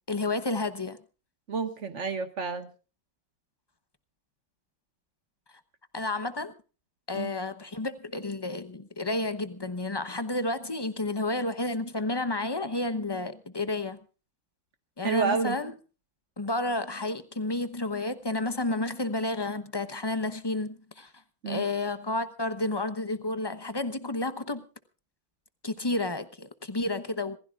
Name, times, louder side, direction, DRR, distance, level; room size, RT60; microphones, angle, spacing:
voice 1, 0.1-1.0 5.9-6.5 7.1-14.0 15.0-15.7 16.4-21.1 21.5-24.6 25.6-27.4, left 2 dB, 35° left, 0.3 m, -31 dB
voice 2, 1.5-2.7 7.1-7.3 15.0-15.6 21.4-21.7, right 5 dB, 40° right, 1.8 m, -29 dB
26.5 x 15.5 x 2.4 m
omnidirectional pair, 2.1 m